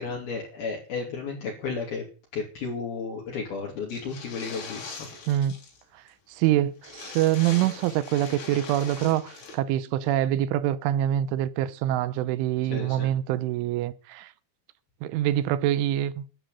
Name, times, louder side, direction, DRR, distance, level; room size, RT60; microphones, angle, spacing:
voice 1, 0.0-2.0 2.3-5.1 12.7-13.1, left 5 dB, 55° left, 4.5 m, -33 dB
sound 1, 3.9-5.8 6.1-6.2 6.4-6.5 6.8-9.6, left 4 dB, 75° left, 6.4 m, -42 dB
voice 2, 5.9-14.3 15.0-16.2, right 12 dB, 85° right, 3.3 m, -25 dB
13.0 x 9.3 x 8.4 m
omnidirectional pair, 5.5 m